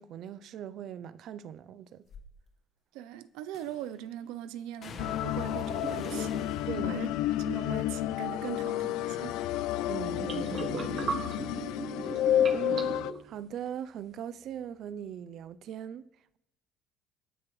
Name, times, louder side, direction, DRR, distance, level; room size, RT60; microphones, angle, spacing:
voice 1, 0.0-2.1 6.7-7.0 9.9-10.9 12.5-16.0, right 9 dB, 45° right, 0.5 m, -40 dB
sound 1, 2.1-2.3 3.5-4.0 4.8-9.0 9.4-10.0 10.4-13.6 13.9-15.0 15.3-15.5, left 5 dB, 40° left, 1.4 m, -50 dB
voice 2, 2.9-6.3 6.8-9.4, right 11 dB, 90° right, 0.6 m, -41 dB
sound 2, 5.0-13.1, left 12 dB, 75° left, 0.5 m, -30 dB
sound 3, 5.7-6.6 10.1-13.3, right 5 dB, 30° right, 1.0 m, -37 dB
25.5 x 9.7 x 3.2 m
cardioid pair, 170°, 0 cm